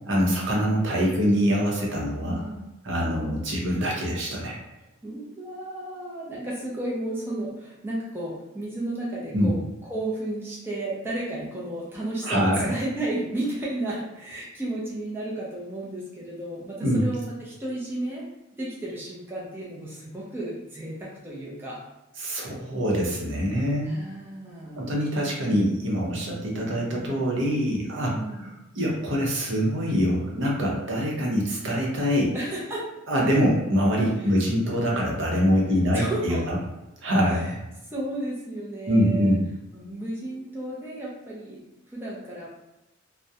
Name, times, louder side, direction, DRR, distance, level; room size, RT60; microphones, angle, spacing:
voice 1, 0.1-2.5 2.8-4.6 9.3-9.5 12.2-12.7 16.8-17.0 22.2-23.9 24.8-28.1 28.8-32.3 33.1-36.6 37.0-37.6 38.9-39.4, equal, 60° right, -2 dB, 0.6 m, -24 dB
voice 2, 2.3-2.7 5.0-18.2 18.6-21.8 23.8-24.9 28.0-28.5 32.3-32.9 34.2-34.3 35.9-36.4 37.2-37.6 37.9-39.4 39.7-42.5, right 1 dB, 10° right, -6 dB, 0.4 m, -33 dB
2.3 x 2.0 x 2.7 m, 1.0 s
head